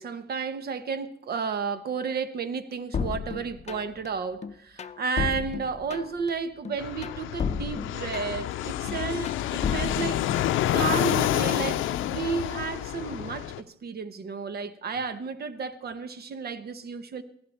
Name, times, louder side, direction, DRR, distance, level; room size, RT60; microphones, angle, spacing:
voice 1, 0.0-10.2 10.7-17.2, right 5 dB, 50° right, 11 dB, 1.1 m, -32 dB
sound 1, 2.9-4.1 4.4-6.3 6.6-8.5 8.9-10.8 11.1-11.7, left 6 dB, 35° left, 0.6 m, -33 dB
Fixed-wing aircraft airplane, 6.8-13.6, left 12 dB, 85° left, 0.6 m, -28 dB
16.5 x 12.0 x 4.3 m, 0.68 s
cardioid pair, 90°, 20 cm